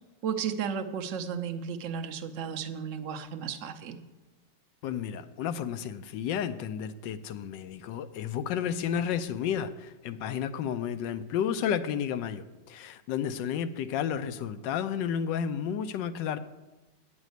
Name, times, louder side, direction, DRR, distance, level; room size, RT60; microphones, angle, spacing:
voice 1, 0.2-4.0, right 7 dB, 55° right, 8 dB, 0.9 m, -34 dB
voice 2, 4.8-16.4, left 8 dB, 85° left, 12 dB, 1.3 m, -32 dB
9.2 x 6.2 x 7.9 m, 1.1 s
omnidirectional pair, 1.9 m